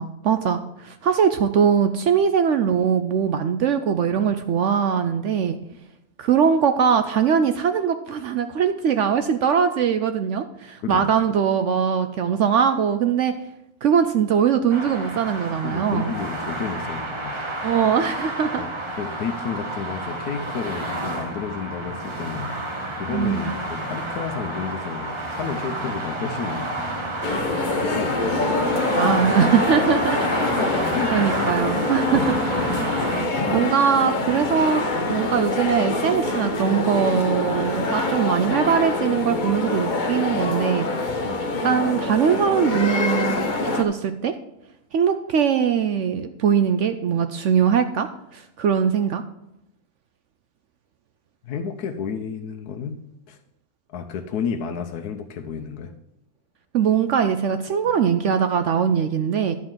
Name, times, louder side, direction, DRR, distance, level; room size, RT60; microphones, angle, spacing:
voice 1, 0.0-5.6 6.2-13.3 13.8-16.1 17.6-18.6 23.1-23.5 29.0-30.3 31.1-32.4 33.5-34.8 35.1-40.9 41.6-43.4 43.7-44.3 44.9-49.2 56.7-59.6, right 7 dB, 65° right, 9 dB, 0.8 m, -21 dB
sound 1, 14.7-33.3, right 1 dB, 20° right, 1.1 m, -30 dB
voice 2, 15.6-17.4 18.6-18.7 19.0-22.6 23.0-26.7 27.8-28.9 30.4-31.3 31.9-32.0 51.4-53.4 53.9-55.9 57.9-58.0, left 6 dB, 80° left, 5 dB, 1.2 m, -31 dB
sound 2, 27.2-43.8, left 2 dB, 40° left, 0.8 m, -25 dB
11.0 x 4.3 x 7.3 m, 0.86 s
omnidirectional pair, 1.6 m